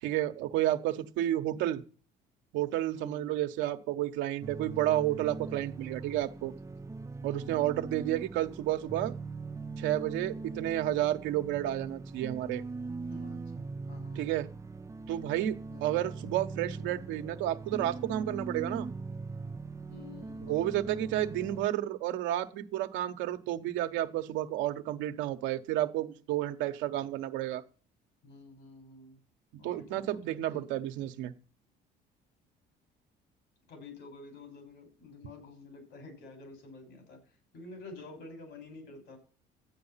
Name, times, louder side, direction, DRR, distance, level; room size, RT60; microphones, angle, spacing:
voice 1, 0.0-1.8 2.5-6.5 7.2-9.1 9.8-12.6 14.1-14.5 15.1-18.9 20.4-27.6 29.6-31.3, right 13 dB, 90° right, 7 dB, 1.2 m, -31 dB
voice 2, 2.9-3.3 7.3-7.7 13.1-14.2 15.7-16.0 19.9-20.8 28.2-29.2 29.6-30.2 30.5-30.7 33.7-37.2 37.5-39.2, left 3 dB, 75° left, 6 dB, 6.2 m, -49 dB
sound 1, 4.4-21.7, right 3 dB, 15° right, 0.6 m, -41 dB
13.0 x 8.9 x 5.7 m, 0.40 s
cardioid pair, 105°, 19 cm